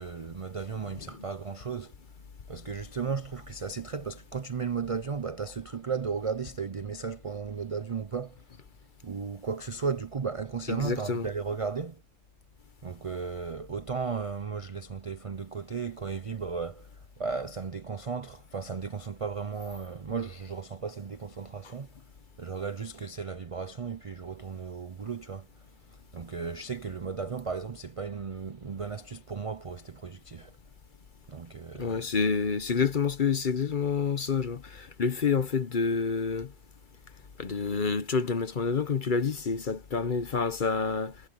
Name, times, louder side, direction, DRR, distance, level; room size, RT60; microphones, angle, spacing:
voice 1, 0.0-1.9 2.5-8.4 9.0-12.0 12.8-21.9 22.4-25.5 25.9-30.5 31.3-32.1, right 5 dB, 45° right, 0.4 m, -35 dB
voice 2, 0.8-1.3 10.7-11.3 31.7-36.5 37.4-41.2, left 5 dB, 40° left, 0.9 m, -28 dB
omnidirectional pair, 1.4 m